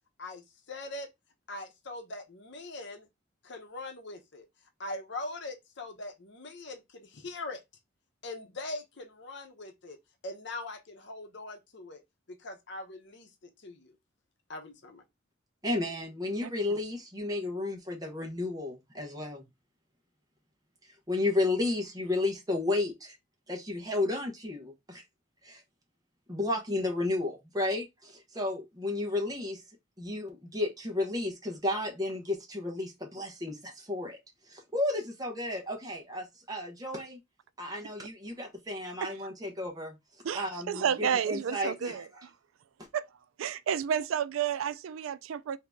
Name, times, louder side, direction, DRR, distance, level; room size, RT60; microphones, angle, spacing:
voice 1, 0.2-1.1 1.5-3.1 3.4-4.4 4.8-7.6 8.2-10.0 10.2-12.0 12.3-14.0 14.5-15.0, left 2 dB, 60° left, 0.8 m, -41 dB
voice 2, 15.6-19.5 21.1-23.2 23.5-25.0 25.4-25.6 26.3-29.6 30.0-34.2 34.5-37.2 37.6-40.0 40.3-42.1 42.8-42.9, left 2 dB, 20° right, 1.0 m, -32 dB
voice 3, 40.2-42.0 42.9-43.1 43.4-45.6, right 8 dB, 90° right, 0.4 m, -31 dB
3.7 x 2.8 x 3.5 m
head